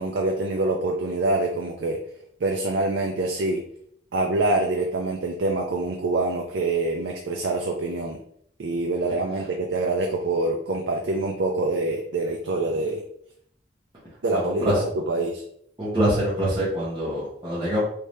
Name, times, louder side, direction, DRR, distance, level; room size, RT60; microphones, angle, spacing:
voice 1, 0.0-2.0 2.4-3.6 4.1-8.2 8.6-13.0 14.2-15.4, right 2 dB, 90° right, 1 dB, 0.5 m, -25 dB
voice 2, 14.3-14.8 15.8-17.8, right 1 dB, 25° right, -10 dB, 1.0 m, -25 dB
3.4 x 2.7 x 3.1 m, 0.66 s
head